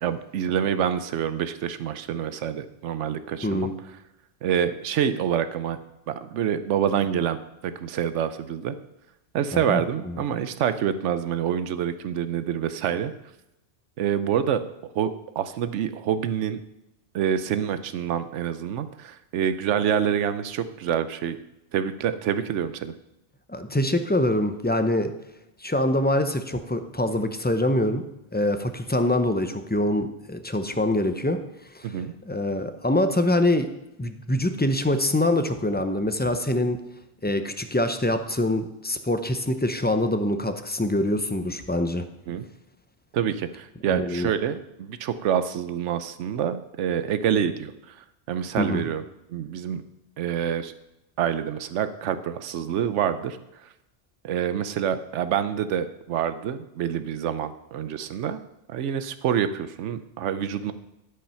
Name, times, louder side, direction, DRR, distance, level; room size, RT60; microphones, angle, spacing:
voice 1, 0.0-3.7 4.4-5.8 6.1-7.4 7.6-8.7 9.3-13.1 14.0-14.7 14.9-16.6 17.1-21.4 21.7-22.9 31.8-32.1 42.3-42.5 43.1-48.0 48.3-49.0 49.3-49.8 50.2-50.7 51.2-53.4 54.2-58.4 58.7-60.7, right 9 dB, 85° right, 12 dB, 1.0 m, -27 dB
voice 2, 23.5-25.1 25.6-28.0 28.3-31.4 31.7-31.9 32.2-33.7 34.0-36.8 37.2-42.1 43.9-44.3 48.6-48.9, left 1 dB, 15° left, 8 dB, 0.4 m, -24 dB
12.0 x 5.5 x 5.6 m, 0.87 s
omnidirectional pair, 1.2 m